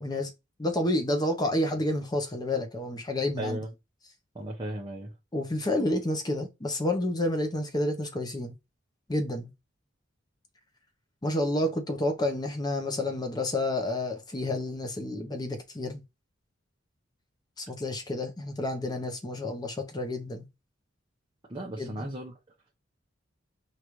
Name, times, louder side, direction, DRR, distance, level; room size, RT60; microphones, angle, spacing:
voice 1, 0.0-0.3 0.6-3.6 5.3-8.5 9.1-9.5 11.2-16.0 17.6-20.5 21.8-22.2, left 1 dB, 20° left, 0.7 m, -29 dB
voice 2, 3.4-3.7 4.3-5.1 21.5-22.3, right 1 dB, 25° right, 0.8 m, -35 dB
4.9 x 2.5 x 3.0 m
head